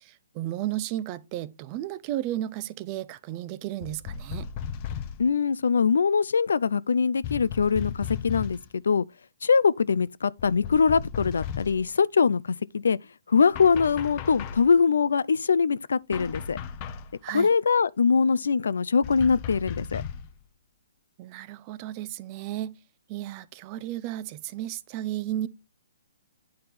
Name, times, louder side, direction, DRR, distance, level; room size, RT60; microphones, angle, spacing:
voice 1, 0.0-4.5 17.2-17.5 21.2-22.8 23.1-25.5, right 13 dB, 30° right, 0.5 m, -33 dB
sound 1, 3.8-5.3 7.2-8.7 10.4-11.9 13.5-14.8 16.1-17.2 19.0-20.3, left 7 dB, 35° left, 0.7 m, -36 dB
voice 2, 5.2-9.0 9.4-13.0 13.3-16.6 17.3-20.0, left 5 dB, 75° left, 0.3 m, -23 dB
8.8 x 4.2 x 3.4 m
hypercardioid pair, 145°, 0 cm